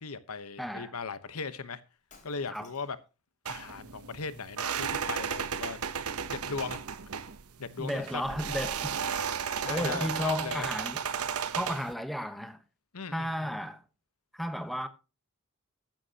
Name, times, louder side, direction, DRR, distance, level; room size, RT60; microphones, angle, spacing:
voice 1, 0.0-1.8 2.2-3.0 3.4-5.8 6.3-6.8 7.6-8.2 9.6-10.7 12.9-13.5, left 4 dB, 75° left, 1.0 m, -38 dB
voice 2, 0.6-0.9 2.5-2.7 7.8-9.0 9.7-11.0 11.5-12.6 13.1-13.8 14.3-14.9, equal, ahead, 1.1 m, -34 dB
Shatter, 2.1-3.1, left 4 dB, 35° left, 3.8 m, -59 dB
sound 1, 3.4-11.9, right 7 dB, 80° right, 0.9 m, -34 dB
14.0 x 10.5 x 2.9 m
head